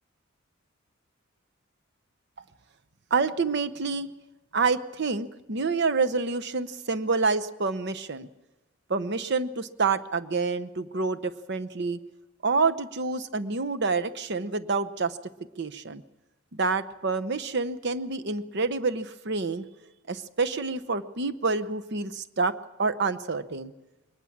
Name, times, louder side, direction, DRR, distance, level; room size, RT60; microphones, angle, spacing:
voice 1, 3.1-4.1 4.5-8.3 8.9-12.0 12.4-15.2 15.6-16.0 16.5-19.7 20.1-22.5 22.8-23.7, right 4 dB, 55° right, 11 dB, 0.9 m, -28 dB
22.5 x 20.0 x 7.3 m, 1.0 s
head